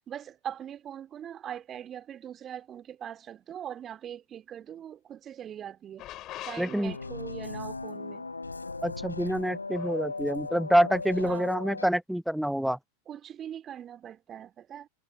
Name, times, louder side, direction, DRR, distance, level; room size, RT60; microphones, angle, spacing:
voice 1, 0.1-6.1 6.4-8.3 11.2-11.5 13.1-14.9, right 9 dB, 25° right, 3.7 m, -41 dB
sound 1, 6.0-7.3 9.7-10.1, left 15 dB, 35° left, 4.3 m, -43 dB
voice 2, 6.6-6.9 8.8-12.8, equal, ahead, 0.5 m, -27 dB
sound 2, 6.8-11.9, left 3 dB, 80° left, 1.0 m, -37 dB
figure-of-eight pair, 90°, 0 cm